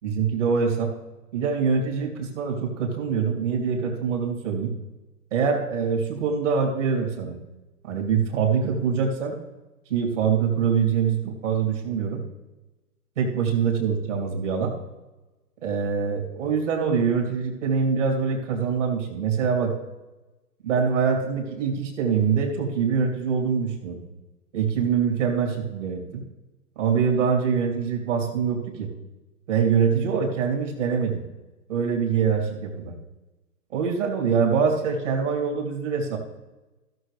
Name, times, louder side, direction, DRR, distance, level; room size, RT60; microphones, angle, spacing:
voice 1, 0.0-0.9 1.3-4.7 5.3-7.4 7.8-9.4 9.9-12.2 13.2-14.7 15.6-19.7 20.6-24.0 24.5-26.2 26.8-28.9 29.5-31.2 31.7-33.0 33.7-36.2, right 6 dB, 50° right, 2 dB, 3.0 m, -24 dB
16.5 x 6.7 x 3.3 m, 1.1 s
figure-of-eight pair, 130°, 47 cm